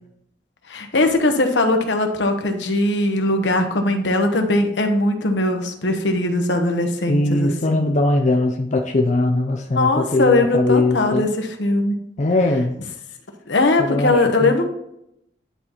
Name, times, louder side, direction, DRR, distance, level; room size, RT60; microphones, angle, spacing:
voice 1, 0.7-7.8 9.8-11.9 13.5-14.7, left 2 dB, 70° left, 5 dB, 1.0 m, -20 dB
voice 2, 7.1-11.2 12.2-12.7 13.8-14.5, left 2 dB, 40° left, 3 dB, 0.6 m, -20 dB
10.5 x 4.0 x 3.0 m, 0.80 s
head